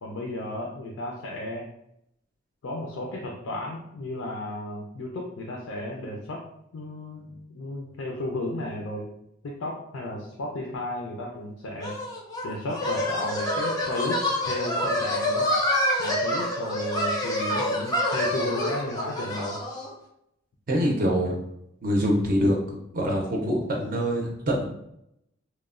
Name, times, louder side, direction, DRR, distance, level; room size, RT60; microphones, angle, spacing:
voice 1, 0.0-1.7 2.6-6.4 6.7-9.1 9.4-11.9 12.4-15.5 16.0-19.6, left 1 dB, 85° left, -1 dB, 0.4 m, -34 dB
sound 1, 11.8-19.9, left 1 dB, 20° left, 0.4 m, -27 dB
voice 2, 20.7-21.4 21.8-22.6 22.9-24.6, equal, 45° right, -1 dB, 0.5 m, -24 dB
2.9 x 2.1 x 2.4 m, 0.77 s
head